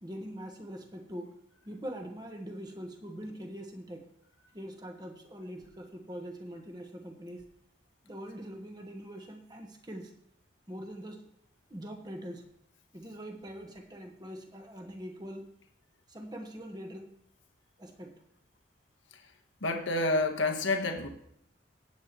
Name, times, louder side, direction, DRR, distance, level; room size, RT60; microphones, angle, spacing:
voice 1, 0.0-1.4 1.7-4.1 4.5-7.4 8.0-10.1 10.7-11.2 11.7-12.4 12.9-15.5 16.1-17.1 17.8-18.2, equal, 20° right, 3 dB, 1.3 m, -43 dB
voice 2, 19.6-21.1, left 2 dB, 80° left, 3 dB, 1.3 m, -29 dB
16.5 x 8.6 x 3.1 m, 0.72 s
head